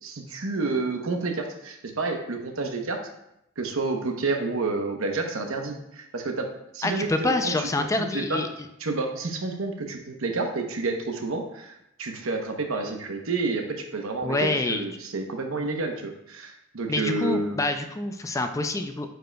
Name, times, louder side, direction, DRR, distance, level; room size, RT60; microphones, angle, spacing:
voice 1, 0.0-3.0 3.6-8.4 8.8-11.7 12.0-17.6, right 3 dB, 75° right, 4 dB, 0.9 m, -29 dB
voice 2, 6.8-8.5 14.2-14.8 16.9-19.1, left 2 dB, 15° left, 7 dB, 0.3 m, -26 dB
8.9 x 5.0 x 2.2 m, 0.82 s
head